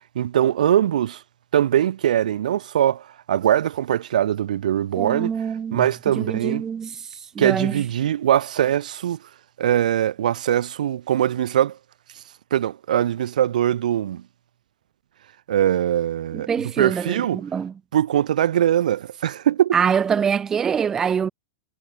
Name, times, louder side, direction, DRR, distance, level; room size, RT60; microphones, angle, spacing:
voice 1, 0.2-1.2 1.5-5.3 5.7-6.7 7.4-9.2 9.6-11.8 12.2-12.3 12.5-14.2 15.5-16.5 16.8-17.4 17.9-19.7, right 11 dB, 85° right, 1.8 m, -21 dB
voice 2, 5.0-7.8 16.3-17.7 19.7-21.3, right 7 dB, 10° right, 1.7 m, -25 dB
supercardioid pair, 175°, 4 cm